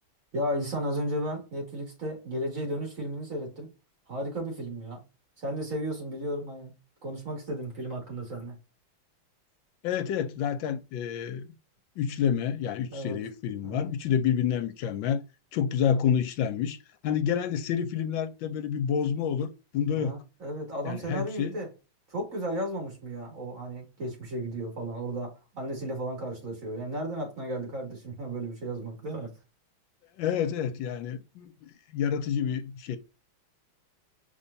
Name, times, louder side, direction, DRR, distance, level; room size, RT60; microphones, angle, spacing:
voice 1, 0.3-3.7 4.1-5.0 5.4-6.7 7.0-8.6 12.9-13.2 13.6-13.9 20.0-21.7 22.1-29.3, right 1 dB, 40° right, 2.6 m, -34 dB
voice 2, 9.8-11.5 12.0-15.2 15.5-16.8 17.0-20.2 20.8-21.6 30.2-33.0, left 8 dB, 75° left, 1.3 m, -28 dB
5.4 x 3.5 x 2.6 m
omnidirectional pair, 2.3 m